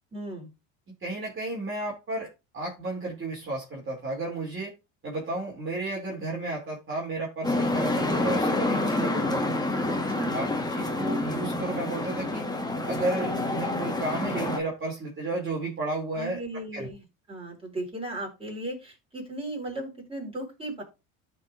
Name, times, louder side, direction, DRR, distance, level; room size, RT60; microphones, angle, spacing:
voice 1, 0.1-0.5 9.9-10.4 16.2-20.8, right 1 dB, 15° right, 0 dB, 4.6 m, -36 dB
voice 2, 1.0-4.7 5.0-9.6 10.3-12.5 12.8-16.4 16.7-16.9, right 2 dB, 30° right, -3 dB, 3.0 m, -33 dB
sound 1, 7.4-14.6, left 2 dB, 10° left, 1.5 m, -28 dB
13.5 x 4.8 x 2.6 m, 0.27 s
supercardioid pair, 90°, 40 cm